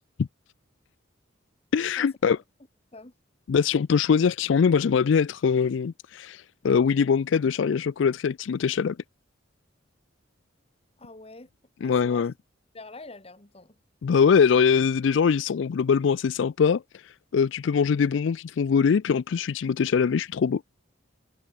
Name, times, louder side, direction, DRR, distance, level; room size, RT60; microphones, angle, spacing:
voice 1, 1.7-2.4 3.5-9.0 11.8-12.3 14.0-20.6, left 6 dB, 70° left, 0.4 m, -22 dB
voice 2, 11.0-11.5 11.8-12.3 12.7-13.8, left 2 dB, 30° left, 1.9 m, -45 dB
head